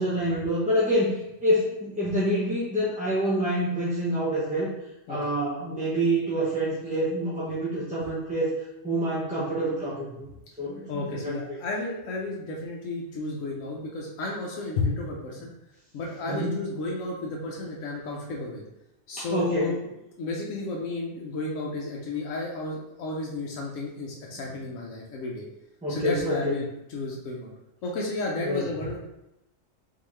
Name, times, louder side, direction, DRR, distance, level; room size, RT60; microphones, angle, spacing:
voice 1, 0.0-4.7 5.1-8.5 8.8-10.1 10.6-11.6 16.2-16.6 19.2-19.7 25.8-26.6 28.4-28.7, equal, 5° right, -10 dB, 0.8 m, -27 dB
voice 2, 10.9-15.5 15.9-18.6 19.1-19.8 20.2-25.4 25.9-27.5 27.8-29.0, left 2 dB, 70° left, -3 dB, 1.0 m, -32 dB
3.9 x 3.9 x 3.1 m, 0.90 s
omnidirectional pair, 1.4 m